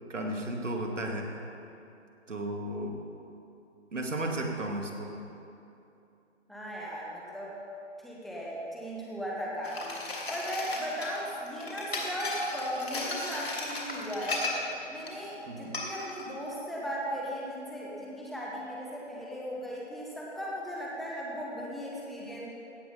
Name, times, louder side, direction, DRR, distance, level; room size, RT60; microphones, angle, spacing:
voice 1, 0.1-1.3 2.3-2.9 3.9-5.2 15.5-15.7, right 1 dB, 85° right, 1 dB, 2.3 m, -34 dB
voice 2, 6.5-7.5 8.0-9.9 10.3-14.5 14.9-22.5, equal, ahead, -5 dB, 0.5 m, -37 dB
sound 1, 9.6-14.7 15.1-15.2 15.7-16.2, left 2 dB, 55° left, 2.9 m, -36 dB
16.5 x 5.7 x 7.0 m, 2.8 s
hypercardioid pair, 175°, 36 cm